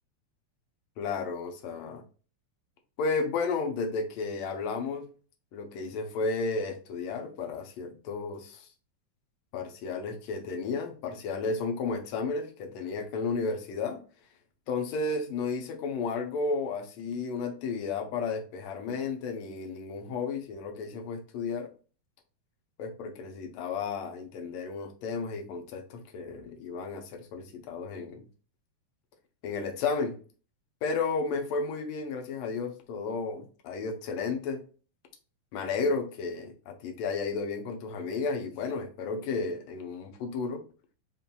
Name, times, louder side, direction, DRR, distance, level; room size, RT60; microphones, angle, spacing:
voice 1, 1.0-2.0 3.0-5.1 5.5-8.7 9.5-14.0 14.7-21.7 22.8-28.3 29.4-30.2 30.8-34.6 35.5-40.6, left 4 dB, 70° left, 4 dB, 1.8 m, -33 dB
5.6 x 3.1 x 2.2 m, 0.37 s
omnidirectional pair, 3.5 m